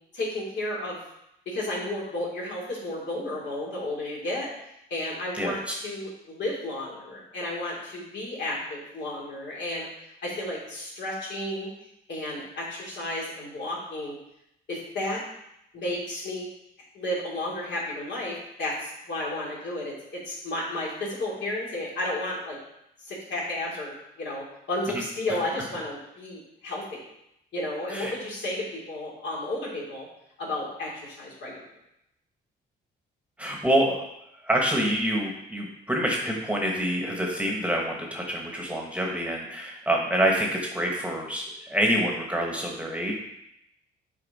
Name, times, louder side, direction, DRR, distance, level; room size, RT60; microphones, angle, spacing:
voice 1, 0.1-1.0 1.5-4.5 4.9-9.9 10.2-11.7 12.1-14.2 14.7-15.2 15.7-16.5 16.9-22.6 23.0-27.0 27.5-30.1 30.4-31.6, left 1 dB, 65° left, -4 dB, 2.6 m, -32 dB
voice 2, 33.4-34.0 34.4-43.1, right 1 dB, 5° right, 0 dB, 1.2 m, -26 dB
6.7 x 4.3 x 4.1 m, 0.80 s
cardioid pair, 90°, 20 cm